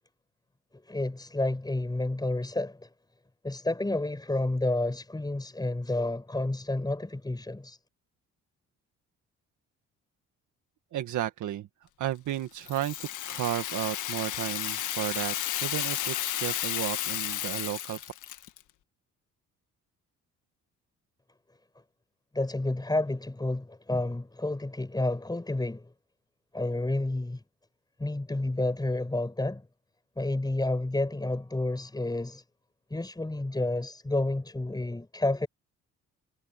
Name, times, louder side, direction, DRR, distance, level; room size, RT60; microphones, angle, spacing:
voice 1, 0.9-2.9 3.4-7.8 22.3-25.9 26.5-27.4 28.0-29.7 30.2-32.4 32.9-35.5, left 2 dB, 15° left, 5.8 m, -30 dB
voice 2, 10.9-11.7 12.0-15.3 15.6-18.0, right 12 dB, 75° right, 1.8 m, -33 dB
Rattle (instrument), 12.6-18.6, left 12 dB, 80° left, 1.9 m, -33 dB
cardioid pair, 90°, 30 cm